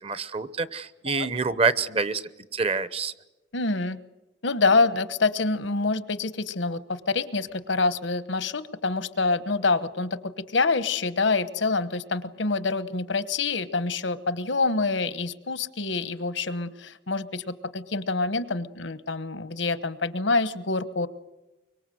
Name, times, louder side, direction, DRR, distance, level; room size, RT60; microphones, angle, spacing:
voice 1, 0.0-3.1, right 4 dB, 30° right, 15 dB, 0.9 m, -27 dB
voice 2, 3.5-4.0 4.4-21.1, left 3 dB, 75° left, 14 dB, 1.1 m, -26 dB
24.5 x 23.5 x 7.8 m, 1.1 s
head